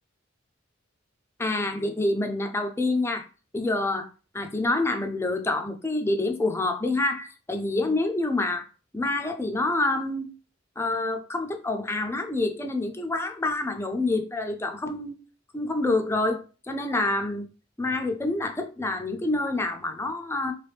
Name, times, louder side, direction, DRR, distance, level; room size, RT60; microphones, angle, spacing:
voice 1, 1.4-3.2 3.5-4.1 4.3-8.7 8.9-10.3 10.8-15.2 15.5-17.5 17.8-20.5, left 2 dB, 15° left, 0.4 m, -27 dB
3.1 x 3.0 x 3.3 m
head